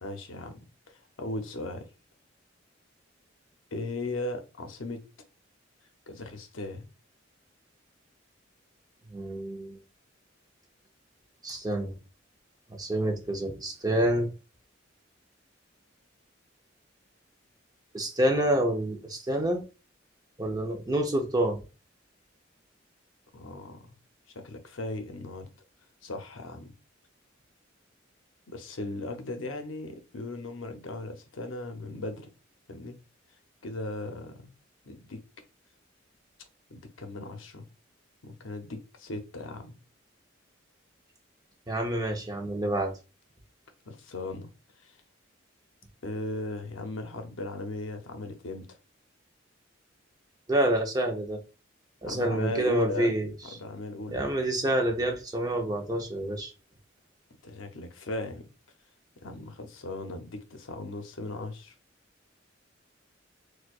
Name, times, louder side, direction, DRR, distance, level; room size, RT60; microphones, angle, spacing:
voice 1, 0.0-1.9 3.7-5.0 6.1-6.9 23.3-23.8 24.3-25.5 26.0-26.7 28.5-32.3 32.7-33.0 33.6-34.5 34.9-35.2 36.7-37.6 38.2-39.8 43.9-44.5 44.8-45.0 46.0-48.7 52.0-53.1 53.5-54.2 57.4-58.5 59.2-61.7, left 2 dB, 85° left, 0.7 m, -37 dB
voice 2, 9.1-9.8 11.4-12.0 12.7-14.3 17.9-19.6 20.4-21.6 41.7-42.9 50.5-51.4 52.0-53.3 54.1-56.5, right 1 dB, 20° right, 0.6 m, -28 dB
4.3 x 2.3 x 2.4 m
head